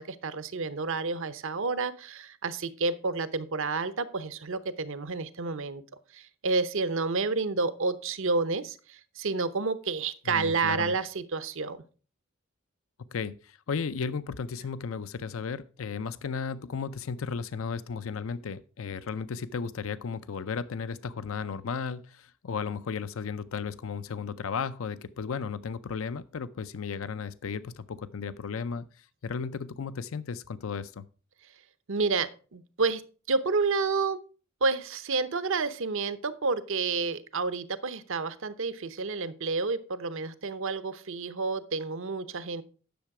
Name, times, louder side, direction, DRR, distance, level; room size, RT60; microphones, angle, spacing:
voice 1, 0.0-5.8 6.1-11.8 31.9-33.0 33.3-34.2 34.6-42.6, right 4 dB, 65° right, 13 dB, 0.8 m, -30 dB
voice 2, 10.3-11.0 13.1-31.0, left 5 dB, 70° left, 15 dB, 0.5 m, -35 dB
10.5 x 6.7 x 4.8 m, 0.38 s
head